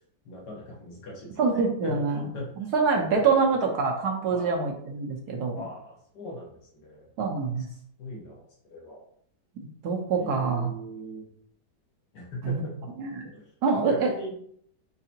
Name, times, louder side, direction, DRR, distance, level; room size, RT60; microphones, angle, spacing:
voice 1, 0.3-1.4 1.8-3.4 4.3-4.6 5.6-7.1 7.7-8.4 8.7-9.0 10.1-11.3 12.1-12.9 13.3-13.4 13.7-14.3, left 1 dB, 75° left, -3 dB, 1.9 m, -40 dB
voice 2, 1.4-2.3 2.7-5.6 7.2-7.7 9.8-10.7 12.4-12.6 13.0-13.3 13.6-14.1, right 4 dB, 70° right, 1 dB, 1.3 m, -25 dB
4.8 x 3.3 x 2.8 m, 0.64 s
omnidirectional pair, 1.9 m